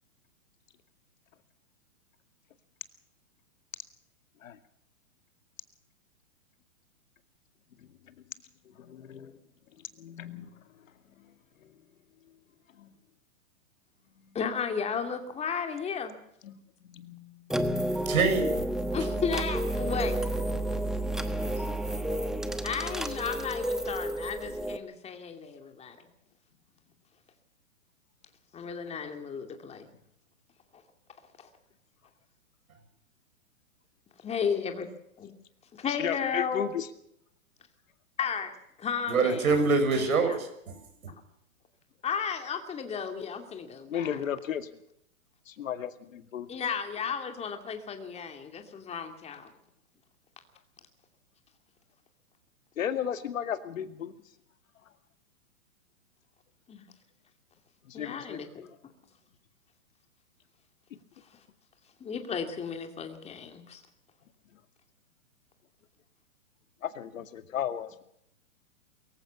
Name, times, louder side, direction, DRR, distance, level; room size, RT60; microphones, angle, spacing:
voice 1, 8.8-9.3 10.0-10.5 12.8-12.9 16.4-16.6 16.8-17.4 36.0-36.9 43.9-44.7 45.5-46.5 52.8-54.1 57.9-58.7 66.8-68.0, left 9 dB, 65° left, 9 dB, 2.3 m, -34 dB
voice 2, 14.3-16.1 18.9-20.2 21.6-21.7 22.6-26.0 28.5-29.9 31.4-31.5 34.2-34.9 35.2-35.3 35.7-36.7 38.2-38.5 38.8-39.6 39.9-40.4 42.0-44.2 46.5-49.5 56.7-56.8 57.9-58.5 62.0-63.8, left 6 dB, 15° left, 5 dB, 2.5 m, -34 dB
sound 1, 17.5-24.8, right 1 dB, ahead, 1.0 m, -31 dB
voice 3, 18.0-18.6 19.0-19.1 21.6-21.7 39.1-41.1, right 4 dB, 75° right, 7 dB, 6.6 m, -26 dB
23.5 x 15.5 x 7.1 m, 0.75 s
hypercardioid pair, 130°, 42 cm